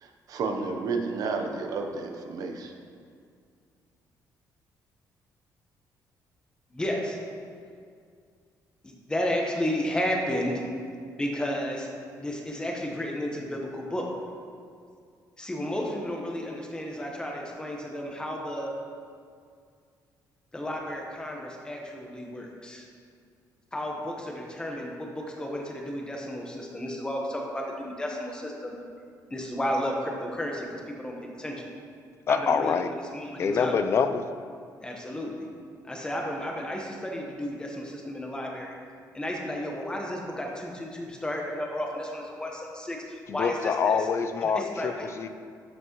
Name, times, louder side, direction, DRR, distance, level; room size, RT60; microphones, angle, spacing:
voice 1, 0.0-2.7, right 4 dB, 55° right, 4 dB, 0.8 m, -31 dB
voice 2, 6.7-7.2 8.8-10.6 11.2-11.9 12.2-14.1 15.4-18.8 20.5-22.9 23.7-28.7 29.3-31.5 32.3-32.8 33.1-33.9 34.8-35.5 35.8-38.8 39.1-44.1 44.4-45.1, equal, 10° left, 0 dB, 1.1 m, -32 dB
voice 3, 32.3-32.9 33.4-34.2 43.3-45.3, left 6 dB, 40° left, 10 dB, 0.4 m, -25 dB
12.5 x 6.2 x 3.1 m, 2.2 s
cardioid pair, 160°, 7 cm